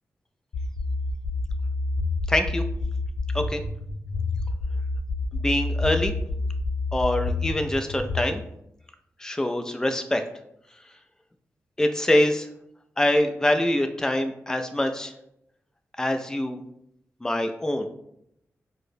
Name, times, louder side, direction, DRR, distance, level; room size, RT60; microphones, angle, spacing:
sound 1, 0.5-8.2, left 3 dB, 60° left, 0.8 m, -28 dB
voice 1, 2.3-2.6 3.3-3.6 5.3-6.1 6.9-8.4 9.2-10.2 11.8-12.5 13.0-15.1 16.0-16.6 17.2-17.9, left 1 dB, 10° left, 7 dB, 0.3 m, -24 dB
4.5 x 2.0 x 2.6 m, 0.76 s
cardioid pair, 65°, 5 cm